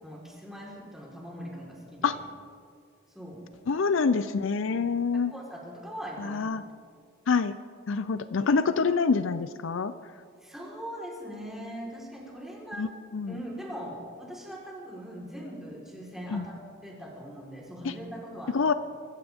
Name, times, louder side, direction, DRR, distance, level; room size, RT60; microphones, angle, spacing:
voice 1, 0.0-2.2 3.1-3.4 5.1-6.4 10.4-12.9 13.3-16.5 16.8-18.6, equal, ahead, -4 dB, 4.0 m, -41 dB
voice 2, 3.7-5.3 6.3-6.6 7.3-7.5 7.9-9.9 12.8-12.9 13.1-13.3 16.3-16.4 18.5-18.7, left 5 dB, 70° left, 12 dB, 0.5 m, -26 dB
24.0 x 15.0 x 3.6 m, 2.1 s
head